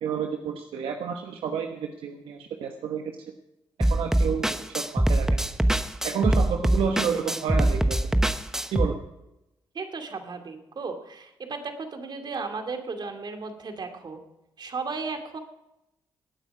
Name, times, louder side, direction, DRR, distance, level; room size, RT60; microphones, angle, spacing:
voice 1, 0.0-3.1 3.9-5.4 6.0-8.0 8.7-8.9, right 7 dB, 80° right, 4 dB, 1.1 m, -30 dB
sound 1, 3.8-8.9, right 1 dB, 5° right, 1.0 m, -23 dB
voice 2, 9.7-14.2 14.6-15.4, right 4 dB, 55° right, 5 dB, 2.5 m, -35 dB
18.5 x 9.2 x 4.9 m, 0.88 s
supercardioid pair, 60°, 9 cm